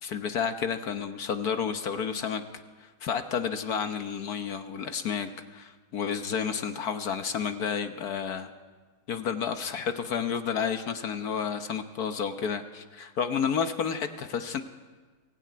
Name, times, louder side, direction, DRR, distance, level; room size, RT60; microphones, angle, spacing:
voice 1, 0.0-2.4 2.8-8.5 9.1-14.6, left 7 dB, 60° left, 8 dB, 1.4 m, -31 dB
22.5 x 16.0 x 9.4 m, 1.4 s
omnidirectional pair, 1.9 m